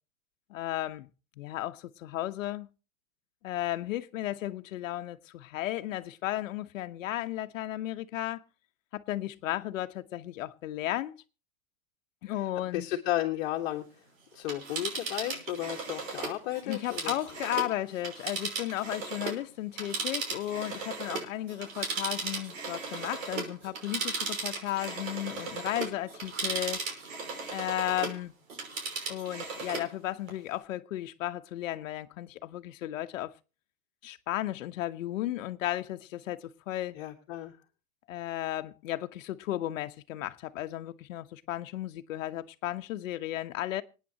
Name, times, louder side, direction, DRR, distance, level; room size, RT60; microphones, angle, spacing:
voice 1, 0.5-1.1 1.4-2.7 3.4-8.4 8.9-11.2 12.2-12.9 16.6-26.9 27.5-28.3 29.1-33.3 34.0-37.0 38.1-43.8, left 14 dB, 70° left, 1.2 m, -34 dB
voice 2, 12.7-13.8 14.3-17.1 36.9-37.5, left 14 dB, 50° left, 1.6 m, -33 dB
Telephone, 14.3-19.4 19.7-28.2 28.5-29.9 30.3-30.4, right 4 dB, 75° right, 5.7 m, -36 dB
26.5 x 9.4 x 2.9 m
supercardioid pair, 180°, 40 cm